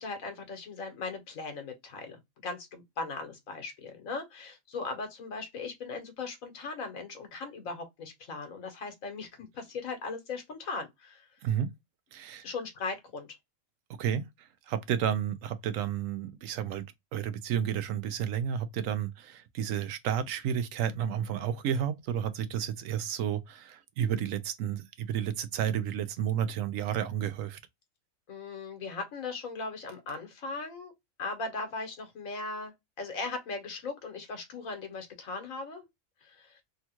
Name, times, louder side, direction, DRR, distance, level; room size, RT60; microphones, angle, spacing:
voice 1, 0.0-11.3 12.4-13.4 28.3-30.9 31.2-35.9 36.2-36.6, left 3 dB, 85° left, 1.5 m, -38 dB
voice 2, 12.1-12.4 14.0-14.2 14.7-16.8 17.1-27.6, right 9 dB, 80° right, 1.0 m, -31 dB
3.5 x 2.3 x 2.8 m
omnidirectional pair, 1.4 m